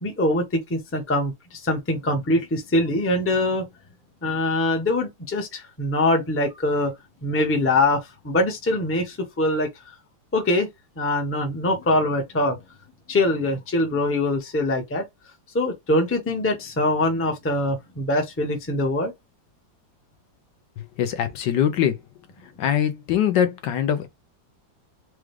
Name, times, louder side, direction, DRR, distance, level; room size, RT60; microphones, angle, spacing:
voice 1, 0.0-3.7 4.2-6.9 7.2-9.7 10.3-10.7 11.0-12.6 13.1-15.0 15.5-19.1, left 1 dB, 10° left, 0.6 m, -23 dB
voice 2, 21.0-22.0 22.6-24.1, left 9 dB, 70° left, 1.3 m, -22 dB
4.9 x 2.3 x 3.2 m
omnidirectional pair, 2.1 m